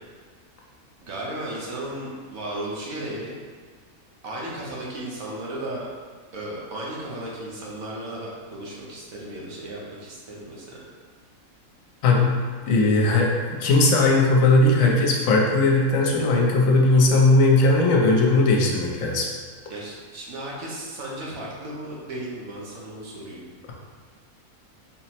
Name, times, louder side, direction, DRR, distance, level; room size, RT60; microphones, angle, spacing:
voice 1, 1.0-3.3 4.2-5.9 6.3-10.8 19.7-23.4, right 1 dB, 80° right, -5 dB, 1.3 m, -35 dB
voice 2, 12.0-12.4 12.7-19.3, left 2 dB, 75° left, -1 dB, 1.0 m, -18 dB
3.9 x 2.0 x 4.2 m, 1.5 s
omnidirectional pair, 1.5 m